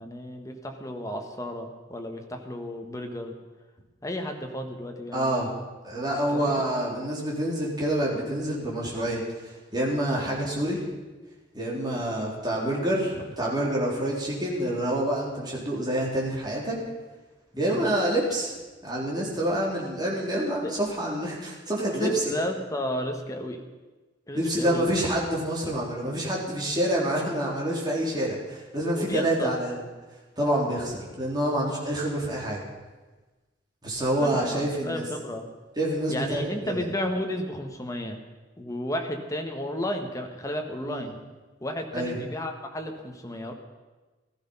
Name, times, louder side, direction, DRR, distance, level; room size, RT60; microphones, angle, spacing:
voice 1, 0.0-3.4 4.0-5.6 6.3-6.7 12.0-12.2 17.5-17.7 20.6-20.7 21.9-23.6 24.3-24.8 29.0-29.5 34.2-35.5 36.1-38.2 38.6-41.2 41.6-43.5, left 1 dB, 20° left, 4 dB, 1.5 m, -33 dB
voice 2, 5.1-5.5 5.8-10.8 11.5-16.8 17.6-18.5 18.8-22.4 24.3-29.8 30.4-32.6 33.8-35.0 35.8-36.9 40.8-41.0 41.9-42.2, right 1 dB, 25° right, -4 dB, 3.9 m, -27 dB
16.0 x 14.0 x 5.7 m, 1.2 s
head